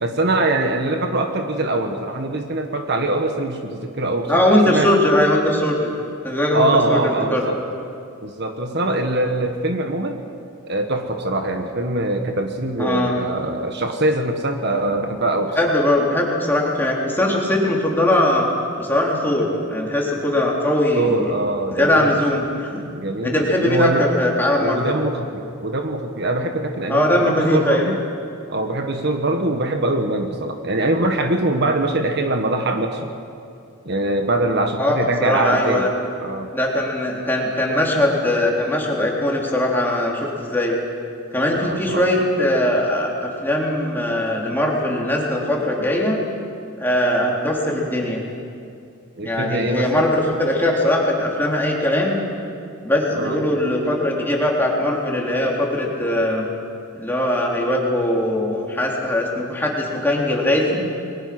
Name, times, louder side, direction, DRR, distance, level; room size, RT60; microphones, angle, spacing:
voice 1, 0.0-4.9 6.5-7.6 8.2-10.2 10.7-15.7 20.9-22.2 22.9-24.1 24.6-28.0 28.5-33.1 33.8-35.9 36.2-36.5 41.5-42.2 49.2-50.0 53.1-53.4, right 2 dB, 50° right, 4 dB, 1.6 m, -23 dB
voice 2, 4.3-5.9 6.2-7.0 7.3-7.4 12.8-13.1 15.6-18.5 18.8-21.2 21.7-22.8 23.2-23.9 24.2-25.0 26.9-27.9 34.8-34.9 35.2-35.9 36.5-40.8 41.3-46.2 46.8-48.2 49.2-52.2 52.8-56.5 57.0-60.8, left 1 dB, 10° left, -2 dB, 3.8 m, -20 dB
30.0 x 22.0 x 6.2 m, 2.5 s
head